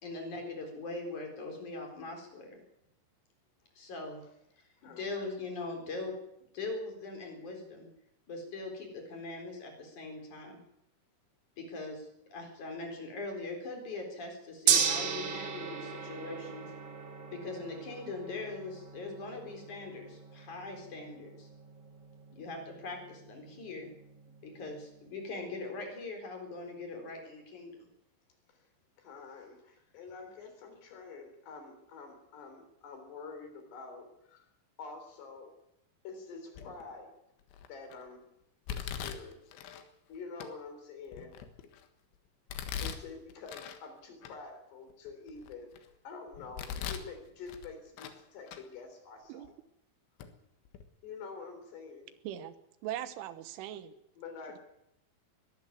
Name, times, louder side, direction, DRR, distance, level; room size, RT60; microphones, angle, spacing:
voice 1, 0.0-2.6 3.8-4.2 4.8-6.1 6.5-7.9 8.3-10.6 11.6-16.7 17.3-21.5 22.3-23.9 24.4-27.9, left 3 dB, 40° left, 3 dB, 5.2 m, -41 dB
Gong, 14.7-24.9, right 7 dB, 65° right, 3.7 m, -36 dB
voice 2, 29.0-34.5 34.8-35.5 36.0-37.1 37.7-38.2 38.7-39.4 40.1-41.4 42.8-49.5 51.0-52.2 54.2-54.6, left 4 dB, 60° left, 6 dB, 5.6 m, -47 dB
Domestic sounds home sounds, 36.6-36.9 37.5-37.9 38.7-39.8 40.4-40.5 41.1-41.9 42.5-43.8 44.2-44.3 44.9-45.9 46.3-47.1 47.5-48.2 48.5-48.6 49.4-49.5 50.2-50.3 50.7-50.8, left 8 dB, 80° left, 3.9 m, -41 dB
voice 3, 52.8-53.9, right 12 dB, 90° right, 12 dB, 3.7 m, -39 dB
22.0 x 13.0 x 9.6 m, 0.82 s
omnidirectional pair, 5.4 m